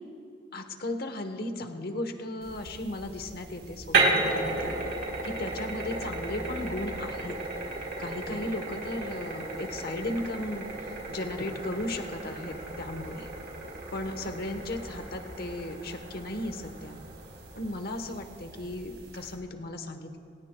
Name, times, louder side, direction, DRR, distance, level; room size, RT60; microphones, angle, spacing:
voice 1, 0.5-4.8 5.2-7.4 8.0-13.3 13.9-17.0 17.5-20.2, left 1 dB, 50° left, 6 dB, 1.1 m, -36 dB
sound 1, 2.4-19.3, right 3 dB, 70° right, 3.8 m, -34 dB
27.0 x 17.0 x 2.3 m, 2.8 s
head